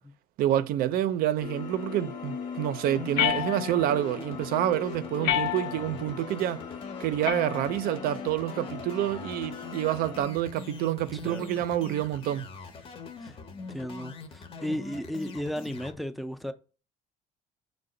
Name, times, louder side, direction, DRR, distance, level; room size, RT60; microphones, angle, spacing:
voice 1, 0.4-6.6 7.0-12.5, right 12 dB, 70° right, 0.4 m, -28 dB
sound 1, 1.4-10.2, left 6 dB, 60° left, 0.8 m, -40 dB
sound 2, 2.8-15.9, left 5 dB, 35° left, 0.7 m, -43 dB
sound 3, 3.2-4.0 5.2-6.0 7.2-8.1, left 11 dB, 90° left, 0.5 m, -30 dB
voice 2, 11.1-11.6 13.2-13.4 13.7-16.5, equal, ahead, 0.4 m, -35 dB
5.6 x 2.1 x 3.8 m
cardioid pair, 120°, 16 cm